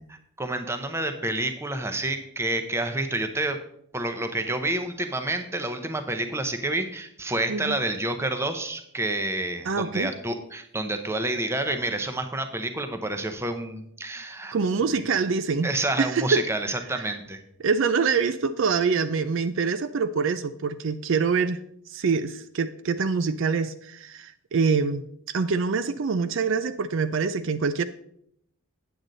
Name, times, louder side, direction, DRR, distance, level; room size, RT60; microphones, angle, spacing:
voice 1, 0.4-3.6 3.9-14.6 15.6-17.4, right 2 dB, 10° right, 7 dB, 0.7 m, -29 dB
voice 2, 7.5-7.8 9.7-10.1 14.5-15.7 16.0-16.4 17.0-17.2 17.6-21.6 21.9-25.0 25.3-27.8, right 5 dB, 60° right, 11 dB, 0.4 m, -25 dB
9.0 x 7.8 x 3.9 m, 0.71 s
head